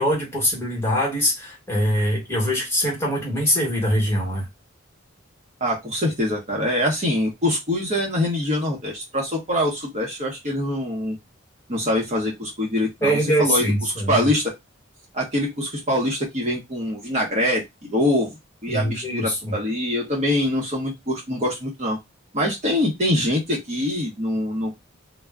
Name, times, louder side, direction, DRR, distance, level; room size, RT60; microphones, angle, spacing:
voice 1, 0.0-4.5 13.0-14.3 18.7-19.5, equal, 10° left, 1.1 m, -23 dB
voice 2, 5.6-11.2 11.7-14.5 15.1-18.4 18.6-22.0 22.3-25.0, left 1 dB, 35° right, 0.8 m, -24 dB
2.2 x 2.0 x 3.4 m
head